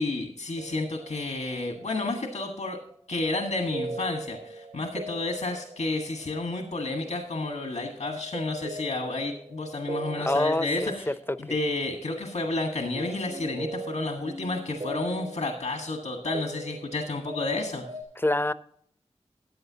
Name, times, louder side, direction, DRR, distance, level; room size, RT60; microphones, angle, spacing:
voice 1, 0.0-2.8 3.1-17.8, left 2 dB, 85° left, 3 dB, 1.5 m, -31 dB
sound 1, 0.6-18.0, right 1 dB, 60° right, 3.5 m, -41 dB
voice 2, 10.2-11.1 11.5-11.6 18.2-18.5, left 1 dB, 20° left, 15 dB, 0.5 m, -26 dB
14.5 x 8.9 x 2.8 m, 0.63 s
wide cardioid pair, 50°, 12 cm